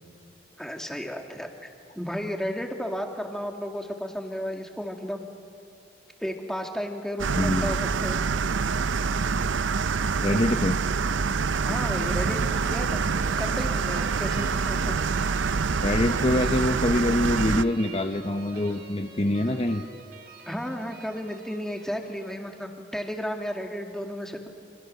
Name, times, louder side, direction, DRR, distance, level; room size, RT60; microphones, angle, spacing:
voice 1, 0.6-1.5 2.0-5.2 6.2-8.2 11.6-14.9 20.5-24.5, equal, 5° left, 3 dB, 2.1 m, -33 dB
sound 1, 7.2-17.6, right 5 dB, 90° right, 0.6 m, -26 dB
voice 2, 7.4-7.8 10.2-10.8 15.8-19.8, left 1 dB, 30° left, 5 dB, 0.9 m, -25 dB
sound 2, 11.9-22.6, right 3 dB, 55° right, 3.3 m, -46 dB
29.5 x 27.0 x 6.7 m, 2.4 s
head